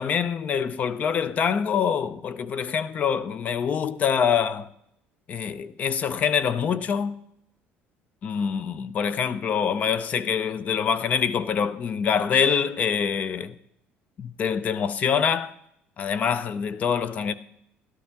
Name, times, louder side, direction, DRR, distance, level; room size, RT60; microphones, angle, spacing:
voice 1, 0.0-4.7 5.3-7.1 8.2-13.5 14.2-15.5 16.0-17.3, left 7 dB, 35° left, 0.5 m, -25 dB
12.5 x 11.5 x 3.5 m
cardioid pair, 150°, 4 cm